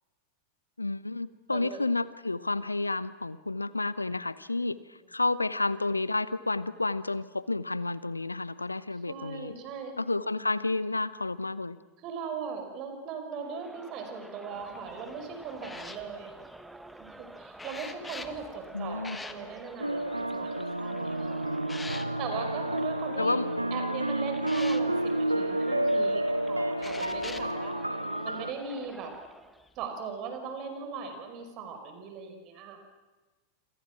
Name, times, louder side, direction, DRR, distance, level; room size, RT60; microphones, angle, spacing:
voice 1, 0.8-4.8 5.1-9.5 10.0-11.8 18.7-19.2 23.2-23.5, left 2 dB, 80° left, 17 dB, 1.0 m, -30 dB
voice 2, 1.5-1.8 9.1-9.9 12.0-16.3 17.0-21.4 22.2-23.4 23.7-27.8 28.2-29.1 29.8-32.8, right 5 dB, 40° right, 6 dB, 5.6 m, -39 dB
Crowd, 13.4-29.7, right 2 dB, 5° right, 1.6 m, -49 dB
sound 1, 14.6-23.0 23.5-23.8 24.4-24.8 26.1-26.2 26.8-27.5 28.5-28.7 29.6-29.9, left 3 dB, 10° left, 1.7 m, -46 dB
sound 2, 19.8-28.5, right 1 dB, 85° right, 0.8 m, -30 dB
28.0 x 27.5 x 6.2 m, 1.2 s
figure-of-eight pair, 90°, 0 cm